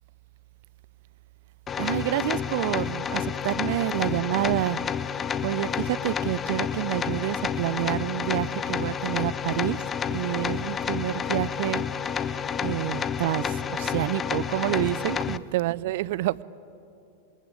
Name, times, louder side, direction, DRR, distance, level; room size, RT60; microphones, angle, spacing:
sound 1, 1.7-15.4, left 7 dB, 20° left, 0.7 m, -30 dB
voice 1, 1.8-4.8 5.4-9.8 10.1-11.8 12.6-16.4, right 16 dB, 50° right, 21 dB, 0.6 m, -28 dB
27.0 x 23.0 x 8.6 m, 2.7 s
figure-of-eight pair, 90°, 0 cm